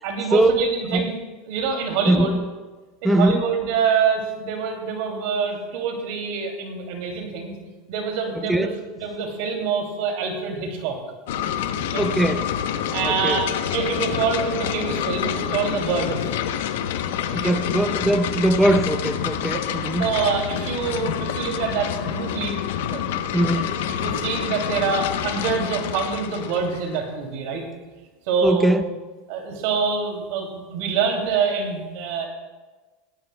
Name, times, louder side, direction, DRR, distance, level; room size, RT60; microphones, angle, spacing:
voice 1, 0.0-1.1 1.5-2.4 3.0-7.5 7.9-8.7 9.0-11.0 11.8-12.0 12.9-16.4 17.4-17.5 19.5-19.6 20.0-22.6 22.9-27.6 28.3-28.7 29.3-32.3, right 5 dB, 65° right, 2 dB, 2.6 m, -26 dB
voice 2, 2.1-2.4 3.0-3.4 8.4-8.7 12.0-12.5 13.0-13.4 17.3-20.1 23.3-23.6 28.4-28.8, right 1 dB, 5° right, 10 dB, 0.6 m, -21 dB
sound 1, 11.3-27.0, left 9 dB, 80° left, 0.8 m, -27 dB
17.5 x 16.5 x 2.3 m, 1.3 s
supercardioid pair, 145°, 0 cm